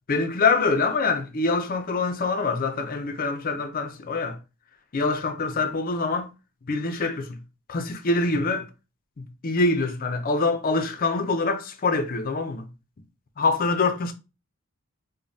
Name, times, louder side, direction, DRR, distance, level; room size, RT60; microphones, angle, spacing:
voice 1, 0.1-4.4 4.9-6.3 6.6-7.4 7.7-8.7 9.2-12.7 13.4-14.1, left 3 dB, 40° left, 0.5 m, -25 dB
5.0 x 2.1 x 2.6 m
head